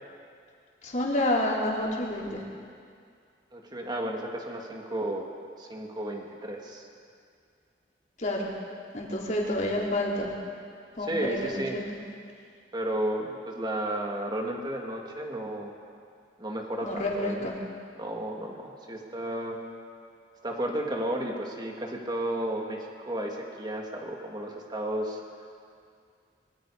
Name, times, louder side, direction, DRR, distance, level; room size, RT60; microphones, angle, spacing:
voice 1, 0.8-2.4 8.2-8.5 8.9-10.3 11.0-11.8 16.8-17.6, left 1 dB, 45° left, -3 dB, 4.1 m, -29 dB
voice 2, 3.5-5.3 5.6-6.9 11.0-11.8 12.7-15.7 16.4-17.5 17.9-19.6 20.4-25.2, right 1 dB, 25° right, 0 dB, 2.6 m, -33 dB
25.0 x 22.5 x 5.2 m, 2.2 s
head